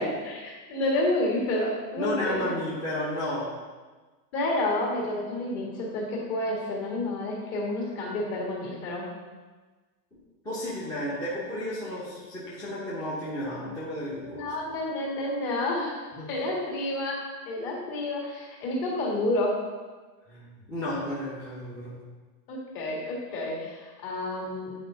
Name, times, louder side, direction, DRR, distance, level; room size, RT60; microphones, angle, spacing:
voice 1, 0.0-2.5 4.3-9.1 14.2-19.6 22.5-24.7, left 1 dB, 40° left, -2 dB, 2.1 m, -30 dB
voice 2, 2.0-3.5 10.4-14.7 16.1-16.3 20.3-22.0, left 1 dB, 10° left, -9 dB, 0.7 m, -33 dB
9.1 x 4.4 x 3.9 m, 1.3 s
supercardioid pair, 165°, 48 cm